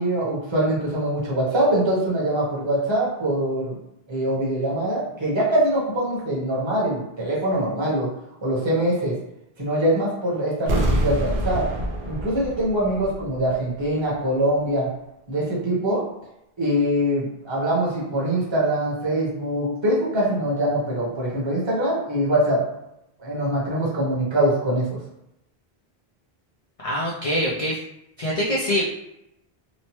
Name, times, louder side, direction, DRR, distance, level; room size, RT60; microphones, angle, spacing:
voice 1, 0.0-3.8 4.1-8.1 8.4-9.1 9.6-11.6 12.1-14.9 15.3-16.0 16.6-22.6 23.2-25.0, right 1 dB, 30° right, -6 dB, 0.9 m, -23 dB
sound 1, 10.7-13.6 13.8-13.9, right 1 dB, 65° right, 0.7 m, -26 dB
voice 2, 26.8-27.8 28.2-28.8, equal, 55° left, -5 dB, 0.4 m, -24 dB
2.9 x 2.1 x 3.0 m, 0.83 s
omnidirectional pair, 1.0 m